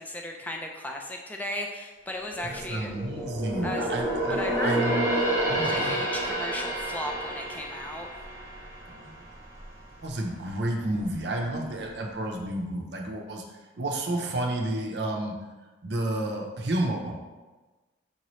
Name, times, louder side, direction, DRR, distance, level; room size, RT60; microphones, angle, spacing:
voice 1, 0.0-2.9 3.6-3.9 4.4-4.8 5.5-8.1, left 1 dB, 10° left, 1 dB, 0.3 m, -36 dB
sound 1, 2.2-9.7 10.1-10.3 10.9-11.6 11.9-12.0, right 1 dB, 15° right, 1.1 m, -30 dB
voice 2, 2.4-5.1 5.5-6.0 8.9-9.3 10.0-15.4 15.8-17.2, right 1 dB, 55° right, 1 dB, 0.6 m, -31 dB
5.5 x 2.9 x 3.0 m, 1.2 s
head